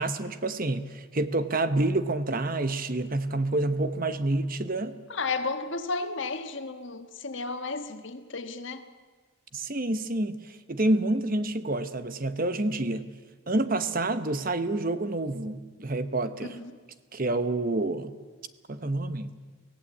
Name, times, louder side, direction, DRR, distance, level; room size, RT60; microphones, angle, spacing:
voice 1, 0.0-4.9 9.5-13.1 13.5-16.6 17.1-18.1 18.7-19.3, right 2 dB, 40° right, 1.0 m, -28 dB
voice 2, 5.1-8.8 16.4-16.7, left 3 dB, 55° left, 1.6 m, -33 dB
24.5 x 17.0 x 8.3 m
head